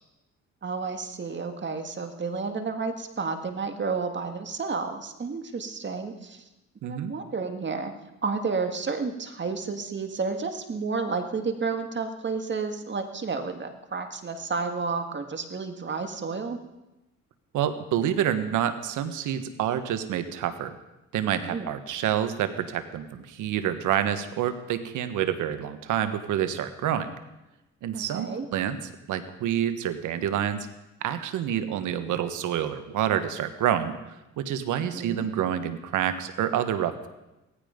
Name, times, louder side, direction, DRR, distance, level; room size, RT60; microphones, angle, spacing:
voice 1, 0.6-6.4 6.8-7.9 8.2-16.6 21.5-21.7 27.9-28.5 34.8-35.3, right 4 dB, 40° right, 6 dB, 1.9 m, -31 dB
voice 2, 6.8-7.1 17.5-20.8 21.1-27.1 27.8-30.7 31.0-34.0 34.4-37.1, right 10 dB, 85° right, 10 dB, 1.3 m, -28 dB
18.0 x 15.0 x 5.2 m, 0.98 s
cardioid pair, 90°, 30 cm